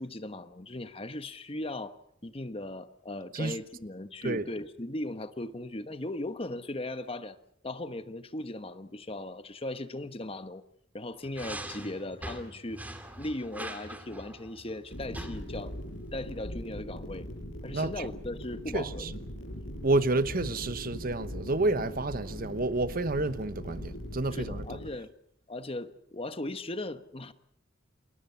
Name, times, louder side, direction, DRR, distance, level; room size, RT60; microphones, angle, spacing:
voice 1, 0.0-2.0 2.2-7.4 7.6-10.6 10.9-12.8 13.2-15.7 16.1-17.3 17.6-19.0 24.3-25.1 25.5-27.3, left 1 dB, 30° left, 1.2 m, -38 dB
sound 1, 11.2-15.3, right 1 dB, 10° right, 2.3 m, -42 dB
sound 2, 14.9-24.9, equal, 75° left, 7.2 m, -40 dB
voice 2, 17.7-18.1 18.7-19.1 19.8-24.8, right 2 dB, 45° right, 1.0 m, -29 dB
29.0 x 21.5 x 5.8 m
head